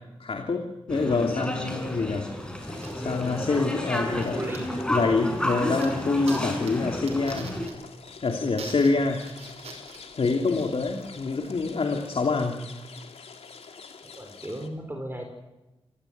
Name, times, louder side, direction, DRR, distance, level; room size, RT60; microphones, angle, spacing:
voice 1, 0.2-0.6 0.9-2.3 3.0-4.4 4.9-7.5 8.2-9.2 10.2-12.6, left 3 dB, 65° left, 3 dB, 2.8 m, -26 dB
sound 1, 0.9-7.7, equal, 10° left, 6.7 m, -31 dB
sound 2, 2.6-14.7, left 5 dB, 80° left, 2.7 m, -47 dB
sound 3, 2.7-11.6, right 4 dB, 90° right, 5.7 m, -46 dB
voice 2, 4.2-4.7 8.5-8.7 14.0-15.2, right 1 dB, 20° right, 3 dB, 4.9 m, -36 dB
25.0 x 17.5 x 9.4 m, 1.0 s
cardioid pair, 50°, 10 cm